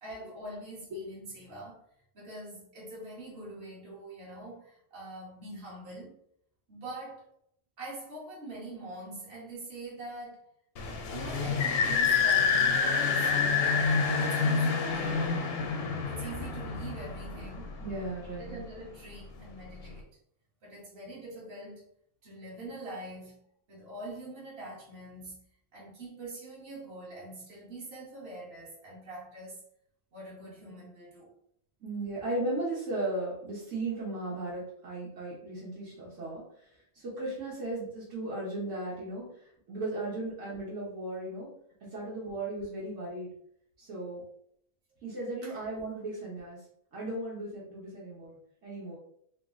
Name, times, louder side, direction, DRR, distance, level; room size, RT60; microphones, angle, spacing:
voice 1, 0.0-1.8 2.1-6.1 6.7-7.3 7.8-10.5 11.1-15.5 16.0-17.8 18.4-20.0 20.6-21.9 22.2-25.4 25.7-29.6 30.1-31.3 42.2-42.3 45.4-45.6, right 2 dB, 50° right, -6 dB, 1.5 m, -44 dB
sound 1, 10.8-18.1, left 5 dB, 60° left, 0.7 m, -28 dB
voice 2, 17.8-18.6 31.8-36.4 36.9-39.4 39.7-41.5 41.8-43.3 43.8-44.2 45.0-46.6 46.9-48.4 48.6-49.0, right 2 dB, 65° right, -7 dB, 1.5 m, -36 dB
3.5 x 2.1 x 3.6 m, 0.68 s
omnidirectional pair, 1.4 m